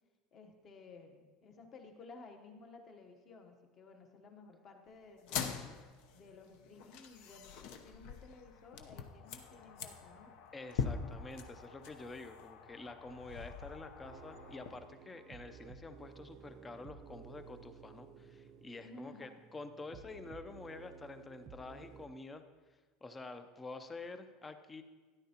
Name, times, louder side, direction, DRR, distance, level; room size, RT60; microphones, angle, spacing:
voice 1, 0.3-5.6 6.1-10.3 18.8-19.4, left 3 dB, 30° left, 5 dB, 1.0 m, -55 dB
sound 1, 5.2-14.8, left 6 dB, 60° left, 0.8 m, -44 dB
voice 2, 10.5-22.4 23.0-24.8, left 3 dB, 15° left, 9 dB, 0.5 m, -48 dB
sound 2, 14.0-22.1, right 6 dB, 35° right, 0.6 m, -55 dB
13.0 x 10.5 x 2.9 m, 1.3 s
cardioid pair, 160°, 0 cm